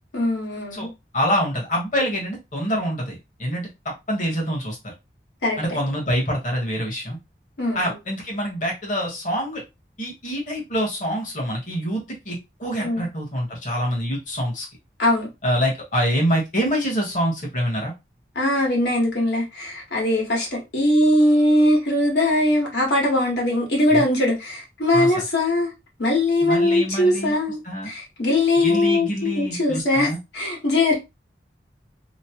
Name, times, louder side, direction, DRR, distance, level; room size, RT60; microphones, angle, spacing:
voice 1, 0.1-0.9 5.4-5.6 7.6-8.0 12.8-13.0 15.0-15.3 18.3-25.7 26.0-30.9, left 1 dB, 80° left, 1.4 m, -21 dB
voice 2, 1.1-4.9 5.6-7.2 7.7-9.6 10.0-14.6 15.4-17.9 23.9-24.0 24.9-25.2 26.4-27.3 27.6-27.9 28.6-30.2, equal, 45° left, 1.2 m, -25 dB
3.0 x 2.0 x 2.8 m
head